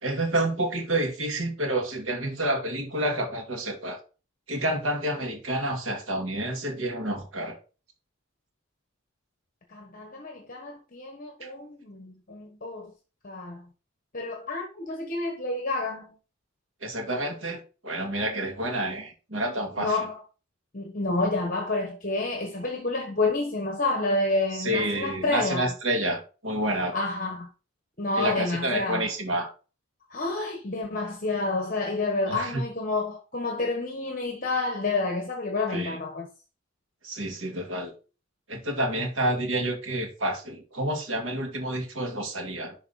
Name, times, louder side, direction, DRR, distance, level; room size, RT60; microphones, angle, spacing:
voice 1, 0.0-4.0 4.5-7.6 11.4-11.5 16.8-20.1 24.5-27.0 28.1-29.5 32.3-32.6 35.7-36.0 37.0-37.9 38.5-42.8, right 1 dB, 70° right, 2.3 m, -29 dB
voice 2, 9.7-12.9 13.2-13.6 14.1-16.1 19.8-20.2 20.7-25.7 26.9-27.5 28.0-29.1 30.1-36.3, left 2 dB, 40° left, 1.2 m, -29 dB
11.0 x 3.9 x 4.1 m
head